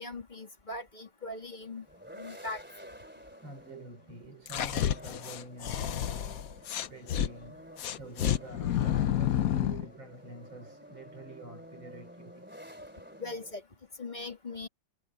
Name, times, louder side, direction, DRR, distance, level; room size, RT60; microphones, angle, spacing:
voice 1, 0.0-1.8 2.1-2.6 13.2-13.6 14.0-14.7, left 2 dB, 25° left, 2.6 m, -40 dB
sound 1, 1.6-13.5, equal, 5° right, 3.0 m, -51 dB
voice 2, 3.4-6.3 6.9-12.6, right 1 dB, 85° right, 5.5 m, -47 dB
sound 2, 4.5-7.3 7.8-9.9, left 11 dB, 60° left, 1.0 m, -30 dB
omnidirectional pair, 2.1 m